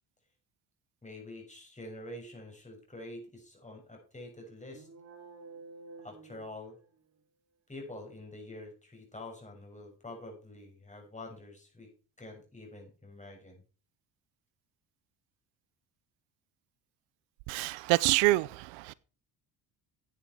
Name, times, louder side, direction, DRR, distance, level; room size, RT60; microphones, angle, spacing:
voice 1, 1.0-4.9 6.0-6.8 7.7-11.9 12.2-13.6, left 1 dB, 15° left, 6.4 m, -46 dB
sound 1, 4.6-7.2, right 3 dB, 35° right, 2.7 m, -51 dB
voice 2, 17.5-18.9, right 20 dB, 90° right, 0.6 m, -26 dB
11.5 x 8.8 x 4.5 m
supercardioid pair, 85°, 47 cm